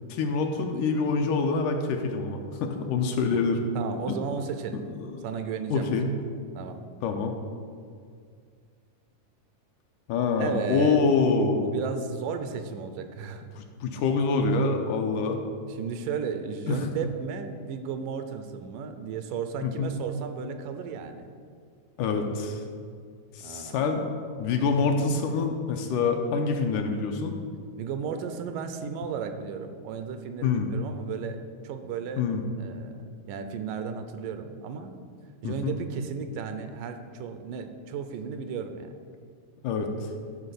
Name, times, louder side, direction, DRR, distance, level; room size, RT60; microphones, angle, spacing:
voice 1, 0.1-3.6 4.1-4.2 5.0-5.3 5.7-6.1 7.0-7.4 10.1-11.7 13.6-15.4 16.7-16.9 19.6-19.9 22.0-22.6 23.3-24.1 24.4-27.3 30.4-30.7 32.2-32.4 35.4-35.8 39.6-39.9, left 4 dB, 80° left, 4 dB, 2.1 m, -26 dB
voice 2, 3.8-4.9 5.2-5.9 6.6-6.8 10.4-11.0 11.5-13.5 15.8-21.3 23.4-23.8 27.8-31.4 31.6-32.2 32.6-34.9 35.4-38.9, right 6 dB, 80° right, 8 dB, 2.1 m, -34 dB
12.0 x 4.3 x 6.8 m, 2.1 s
omnidirectional pair, 3.9 m